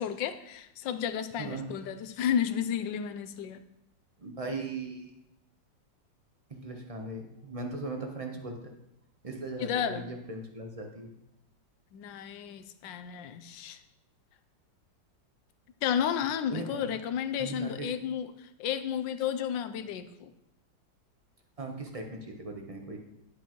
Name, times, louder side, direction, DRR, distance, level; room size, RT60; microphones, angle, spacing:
voice 1, 0.0-3.6 9.6-10.0 11.9-13.8 15.8-20.3, left 8 dB, 80° left, 10 dB, 1.3 m, -32 dB
voice 2, 4.2-5.1 6.5-8.7 9.2-11.1 16.5-16.9 17.4-17.9 21.6-23.0, right 2 dB, 30° right, 2 dB, 0.7 m, -38 dB
11.0 x 8.0 x 3.1 m, 0.82 s
omnidirectional pair, 2.0 m